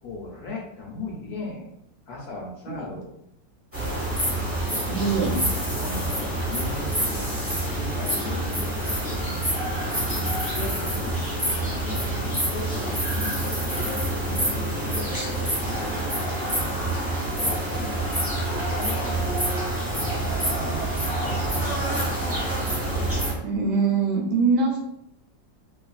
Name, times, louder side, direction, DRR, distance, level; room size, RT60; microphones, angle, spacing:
voice 1, 0.0-1.7 2.1-3.1 4.7-5.0 5.8-9.7 10.5-15.4 15.8-16.8 17.4-18.0 18.7-19.4 19.9-20.9 21.2-22.1, left 3 dB, 70° left, -3 dB, 1.0 m, -38 dB
sound 1, 3.7-23.3, right 1 dB, 10° right, 0.7 m, -27 dB
voice 2, 4.9-5.4 23.4-24.8, right 4 dB, 75° right, -1 dB, 1.2 m, -23 dB
3.0 x 2.3 x 2.4 m, 0.78 s
omnidirectional pair, 2.0 m